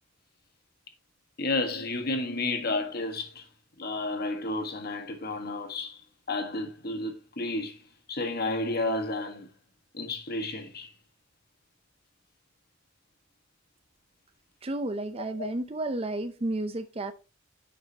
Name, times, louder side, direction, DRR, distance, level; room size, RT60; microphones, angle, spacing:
voice 1, 1.4-3.4 3.8-6.0 6.3-7.8 8.1-9.5 9.9-10.9 15.4-15.5, left 2 dB, 50° left, 1.6 m, -31 dB
voice 2, 14.6-17.1, right 2 dB, 30° right, 0.6 m, -32 dB
10.5 x 6.8 x 2.9 m
head